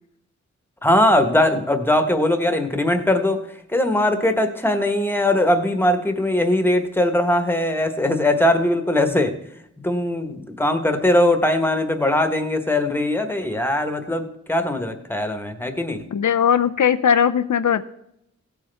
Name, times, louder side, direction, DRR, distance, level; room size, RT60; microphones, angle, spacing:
voice 1, 0.8-3.4 3.7-9.3 9.8-16.0, left 1 dB, 5° left, 7 dB, 1.1 m, -20 dB
voice 2, 16.1-17.8, left 8 dB, 75° left, 10 dB, 0.5 m, -18 dB
17.0 x 8.0 x 3.4 m, 0.77 s
wide cardioid pair, 85°, 30 cm